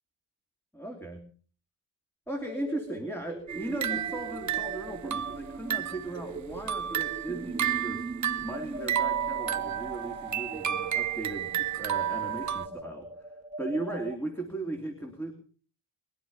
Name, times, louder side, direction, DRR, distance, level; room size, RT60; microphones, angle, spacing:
voice 1, 0.7-1.2 2.3-8.0 8.4-13.1 13.6-15.3, right 2 dB, 5° left, 3 dB, 3.0 m, -37 dB
sound 1, 2.3-14.1, right 3 dB, 15° right, 1.5 m, -40 dB
sound 2, 3.5-6.1 6.5-12.7, right 10 dB, 40° right, 0.9 m, -32 dB
22.5 x 11.5 x 5.4 m, 0.43 s
wide cardioid pair, 135°, 44 cm